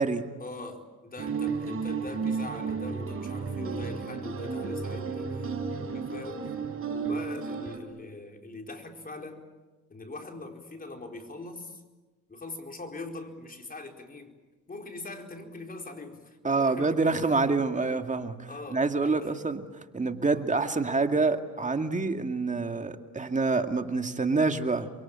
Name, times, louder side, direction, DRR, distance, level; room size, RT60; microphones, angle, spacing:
voice 1, 0.4-5.5 5.9-6.4 6.9-9.4 9.9-11.8 12.3-14.3 14.7-17.4 18.5-19.3 20.3-20.4, left 2 dB, 30° left, 3 dB, 4.5 m, -42 dB
sound 1, 1.2-7.8, right 5 dB, 45° right, 5.3 m, -33 dB
voice 2, 16.4-19.6 19.9-24.9, right 3 dB, 25° right, 6 dB, 2.2 m, -27 dB
29.0 x 23.5 x 8.8 m, 1.2 s
cardioid pair, 90°, 30 cm